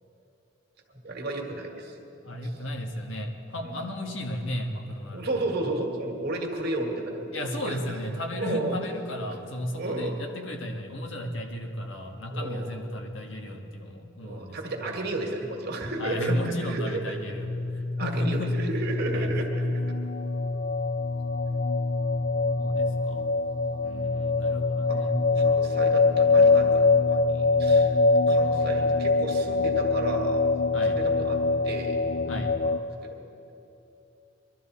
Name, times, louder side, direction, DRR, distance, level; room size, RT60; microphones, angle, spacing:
voice 1, 0.9-2.0 2.2-2.5 3.6-3.9 5.1-7.9 8.4-8.8 9.3-9.4 9.7-10.2 12.3-12.8 14.2-16.3 16.7-17.1 18.0-19.8 24.9-25.0 25.4-27.9 28.3-30.4 30.8-32.1 32.6-32.7 33.0-33.2, right 2 dB, 55° right, 1 dB, 2.0 m, -33 dB
voice 2, 2.2-5.4 7.3-14.6 14.9-15.0 16.0-18.6 19.1-19.4 22.6-23.3 23.8-25.2 30.7-31.0 32.3-32.6, left 1 dB, 75° left, 2 dB, 1.6 m, -34 dB
sound 1, 17.4-32.8, left 3 dB, 50° left, 0.4 m, -24 dB
22.5 x 12.5 x 4.2 m, 2.9 s
head